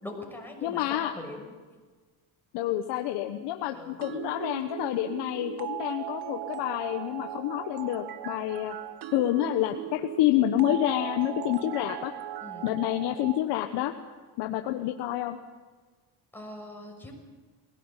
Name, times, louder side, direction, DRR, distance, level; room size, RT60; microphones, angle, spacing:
voice 1, 0.0-1.5 3.7-4.0 12.4-12.7 16.3-17.1, left 2 dB, 5° left, 1 dB, 6.3 m, -41 dB
voice 2, 0.6-1.1 2.5-8.7 9.1-12.1 12.6-13.9 14.4-15.4, left 13 dB, 85° left, 6 dB, 1.3 m, -28 dB
sound 1, 4.0-13.4, right 13 dB, 60° right, 1.4 m, -38 dB
21.0 x 17.5 x 9.0 m, 1.4 s
cardioid pair, 100°, 41 cm